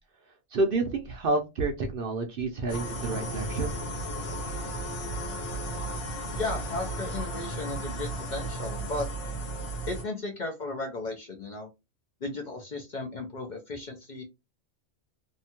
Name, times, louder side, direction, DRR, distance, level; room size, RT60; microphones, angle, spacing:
voice 1, 0.5-3.8, right 2 dB, 60° right, 0.6 m, -29 dB
sound 1, 2.7-10.0, right 1 dB, 70° left, 1.2 m, -34 dB
voice 2, 6.3-9.1 9.9-11.7 12.2-14.2, left 2 dB, 50° left, 0.6 m, -35 dB
2.7 x 2.2 x 2.8 m
omnidirectional pair, 1.3 m